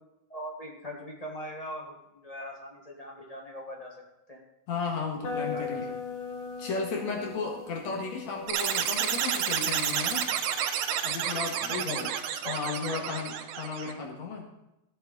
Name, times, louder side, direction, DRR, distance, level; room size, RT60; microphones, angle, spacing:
voice 1, 0.3-4.0 4.3-4.4 5.2-6.0 11.7-12.1 12.4-13.1, left 1 dB, 25° left, -1 dB, 0.9 m, -40 dB
voice 2, 4.7-5.8 6.6-10.3 11.0-12.1 12.4-14.5, left 4 dB, 70° left, 0 dB, 2.9 m, -34 dB
sound 1, 5.2-11.0, left 5 dB, 50° left, 2.2 m, -40 dB
sound 2, 8.5-13.9, right 9 dB, 90° right, 2.1 m, -30 dB
14.5 x 7.4 x 4.1 m, 0.91 s
omnidirectional pair, 3.3 m